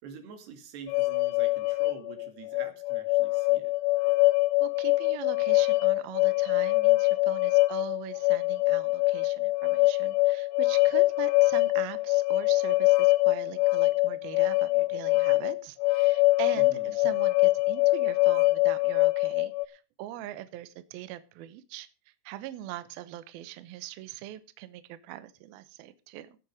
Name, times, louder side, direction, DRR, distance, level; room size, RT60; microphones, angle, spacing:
voice 1, 0.0-3.7 16.5-17.0, right 6 dB, 60° right, 6 dB, 3.8 m, -46 dB
sound 1, 0.9-19.7, left 22 dB, 85° left, 3.2 m, -24 dB
voice 2, 4.6-21.9 22.3-26.4, right 14 dB, 85° right, 12 dB, 2.1 m, -41 dB
15.5 x 8.4 x 5.1 m, 0.33 s
omnidirectional pair, 5.7 m